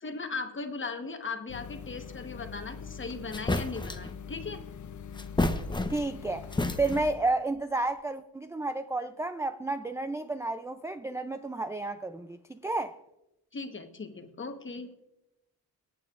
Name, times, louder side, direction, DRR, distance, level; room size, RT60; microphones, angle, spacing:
voice 1, 0.0-4.6 13.5-14.9, left 4 dB, 30° left, 1.1 m, -38 dB
sound 1, 1.5-7.1, left 6 dB, 50° left, 0.5 m, -43 dB
sound 2, 3.3-4.1 5.1-6.2 6.5-7.2, left 2 dB, 10° left, 0.7 m, -30 dB
voice 2, 5.9-6.5 6.8-13.0, right 2 dB, 10° right, 0.3 m, -31 dB
22.0 x 8.8 x 2.4 m
cardioid pair, 90°, 39 cm